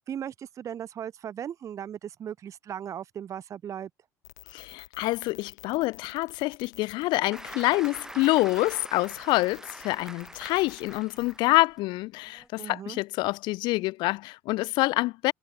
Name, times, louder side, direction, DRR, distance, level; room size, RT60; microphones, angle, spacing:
voice 1, 0.1-3.9 12.6-13.0, right 9 dB, 40° right, 0.4 m, -37 dB
sound 1, 4.2-11.4, left 14 dB, 85° left, 2.3 m, -50 dB
voice 2, 4.5-15.3, left 21 dB, 60° left, 0.4 m, -26 dB
Applause, 7.3-11.8 12.3-12.5, right 1 dB, 5° right, 3.6 m, -44 dB
hypercardioid pair, 65°, 9 cm